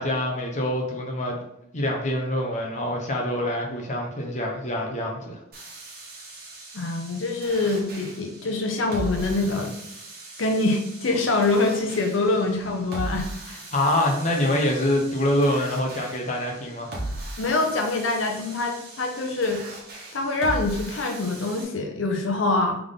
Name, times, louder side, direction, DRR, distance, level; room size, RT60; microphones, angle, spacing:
voice 1, 0.0-1.4 1.7-5.4 13.7-16.9, left 1 dB, 35° left, 0 dB, 0.8 m, -25 dB
sound 1, 5.5-21.6, right 1 dB, 50° right, 1.3 m, -39 dB
voice 2, 6.7-9.7 10.4-13.6 17.4-19.6 20.1-22.8, left 2 dB, 80° left, 2 dB, 0.7 m, -25 dB
3.6 x 3.5 x 3.7 m, 0.80 s
head